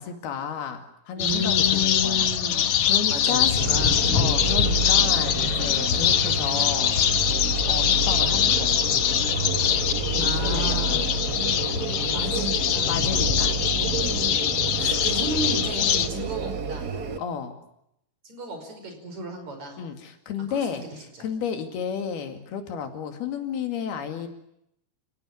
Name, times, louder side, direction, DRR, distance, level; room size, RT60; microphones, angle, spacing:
voice 1, 0.0-2.3 2.8-3.6 4.1-7.0 7.6-8.9 10.1-11.1 12.3-12.4 12.9-13.6 14.7-15.0 17.2-17.6 19.8-20.8 21.2-24.3, left 7 dB, 90° left, 6 dB, 4.3 m, -32 dB
voice 2, 1.1-4.4 10.2-11.0 12.0-12.9 14.2-16.9 18.2-19.8 20.5-20.7, left 1 dB, 45° right, 5 dB, 6.6 m, -33 dB
sound 1, 1.2-16.1, left 9 dB, 75° left, 1.4 m, -23 dB
sound 2, 3.6-17.2, right 5 dB, 70° right, 0.9 m, -30 dB
30.0 x 17.5 x 9.8 m, 0.78 s
omnidirectional pair, 4.4 m